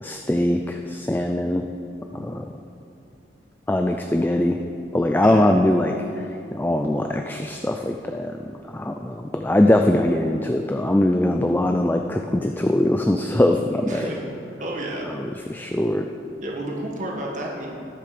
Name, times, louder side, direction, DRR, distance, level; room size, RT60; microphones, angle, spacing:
voice 1, 0.0-1.6 2.1-2.5 3.7-4.6 4.9-6.0 6.5-8.4 8.7-14.1 15.2-16.0, left 1 dB, 10° left, 4 dB, 0.4 m, -21 dB
voice 2, 13.9-14.2 14.6-15.1 16.4-17.7, right 1 dB, 40° right, -2 dB, 1.7 m, -31 dB
19.0 x 6.9 x 5.1 m, 2.7 s
head